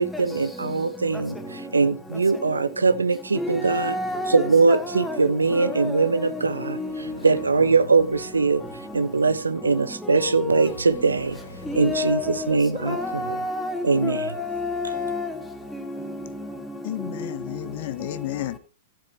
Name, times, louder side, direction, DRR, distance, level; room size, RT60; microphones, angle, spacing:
voice 1, 0.0-1.4 1.7-3.9 4.3-6.8 7.2-8.6 8.9-11.4 11.8-13.2 13.8-14.2, right 4 dB, 80° right, 0.9 m, -21 dB
voice 2, 1.4-1.7 2.3-2.6 3.3-7.4 9.6-9.8 10.0-10.7 11.7-15.4 15.7-17.3, left 2 dB, 5° left, 2.2 m, -30 dB
sound 1, 6.6-9.7 10.6-13.3, left 1 dB, 70° left, 3.7 m, -45 dB
voice 3, 16.8-18.6, left 14 dB, 50° left, 0.9 m, -31 dB
15.5 x 8.7 x 2.9 m
figure-of-eight pair, 105°, 0 cm